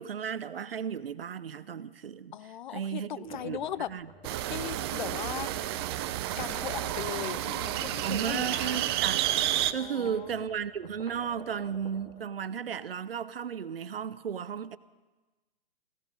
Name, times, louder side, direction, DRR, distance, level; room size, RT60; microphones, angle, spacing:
voice 1, 0.0-2.3 2.7-3.6 3.9-4.1 8.0-9.2 9.7-14.8, right 7 dB, 75° right, 0.8 m, -34 dB
voice 2, 2.3-3.9 4.5-5.5 6.4-8.9 9.8-10.5, left 11 dB, 55° left, 0.5 m, -38 dB
sound 1, 3.2-12.2, left 1 dB, 20° left, 3.3 m, -49 dB
sound 2, 4.2-9.7, right 13 dB, 25° right, 0.5 m, -31 dB
16.5 x 16.0 x 5.5 m
figure-of-eight pair, 125°, 29 cm